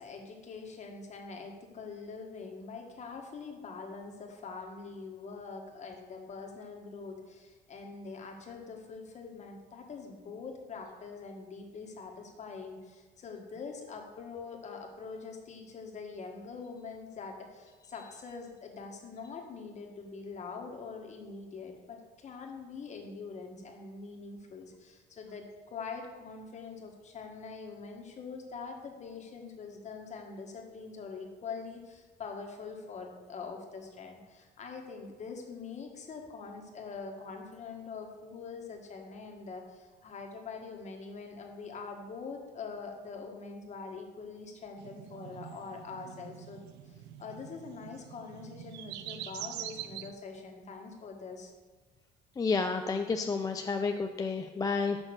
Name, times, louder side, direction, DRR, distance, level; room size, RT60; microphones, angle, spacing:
voice 1, 0.0-46.6 46.9-51.5, left 4 dB, 45° left, 2 dB, 1.5 m, -44 dB
sound 1, 44.8-50.1, right 12 dB, 85° right, 0.5 m, -45 dB
voice 2, 52.4-55.0, left 4 dB, 20° left, 5 dB, 0.4 m, -30 dB
6.2 x 6.1 x 6.4 m, 1.3 s
cardioid pair, 110°, 17 cm